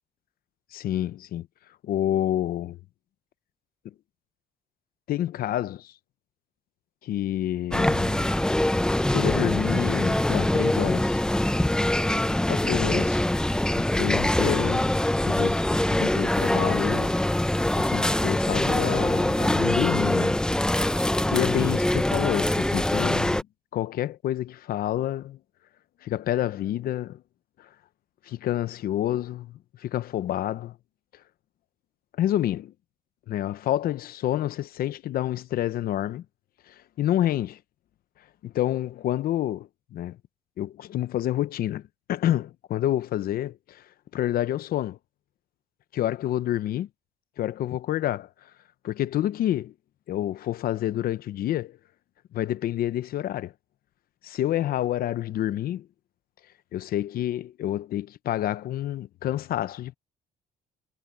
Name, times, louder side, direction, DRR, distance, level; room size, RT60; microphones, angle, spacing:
voice 1, 0.7-1.5 1.8-2.8 5.1-5.9 7.0-8.3 9.1-11.2 12.5-13.2 13.7-14.9 15.2-15.6 16.0-17.1 17.7-20.4 21.3-23.5 23.7-25.4 26.0-27.2 27.6-27.7 28.3-30.8 32.2-32.7 33.3-36.2 36.7-37.6 38.4-40.2 40.6-43.8 44.1-45.0 45.9-46.9 47.4-48.3 48.8-49.7 50.1-51.8 52.3-53.5 54.2-55.9 56.7-59.9, left 12 dB, 60° left, 0.8 m, -28 dB
sound 1, 7.7-23.4, left 1 dB, 5° left, 0.7 m, -24 dB
cardioid pair, 110°, 17 cm